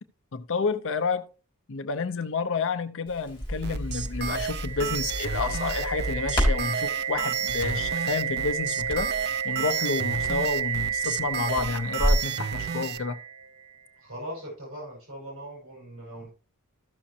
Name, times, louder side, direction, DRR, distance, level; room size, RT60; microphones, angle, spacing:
voice 1, 0.3-1.3 1.7-9.1 9.4-13.2, left 4 dB, 65° left, 0.6 m, -30 dB
Crackle, 3.1-12.3, equal, 20° left, 3.3 m, -32 dB
sound 1, 3.6-13.0, right 7 dB, 50° right, 0.4 m, -33 dB
sound 2, 4.0-13.9, right 7 dB, 25° right, 0.9 m, -31 dB
voice 2, 14.0-16.3, equal, 65° right, 5.5 m, -40 dB
14.0 x 6.3 x 2.8 m
head